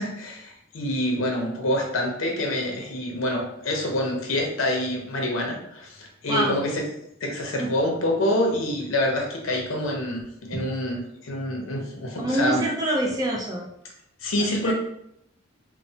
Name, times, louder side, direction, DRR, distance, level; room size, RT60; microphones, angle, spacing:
voice 1, 0.0-6.8 7.2-12.6 14.2-14.7, left 1 dB, 75° left, 1 dB, 0.6 m, -26 dB
voice 2, 12.2-13.7 14.4-14.7, right 1 dB, 15° right, -3 dB, 0.4 m, -26 dB
3.1 x 2.0 x 2.7 m, 0.76 s
head